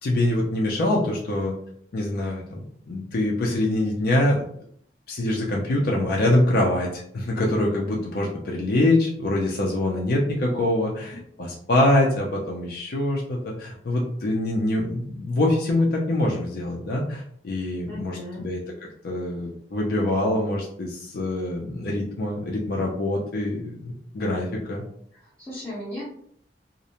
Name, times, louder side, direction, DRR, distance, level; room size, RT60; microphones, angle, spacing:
voice 1, 0.0-1.6 1.9-4.5 5.1-18.6 19.0-24.8, left 1 dB, 60° left, -2 dB, 0.4 m, -24 dB
voice 2, 17.9-18.5 25.4-26.0, equal, 10° left, -12 dB, 0.9 m, -36 dB
2.5 x 2.0 x 2.8 m, 0.64 s
head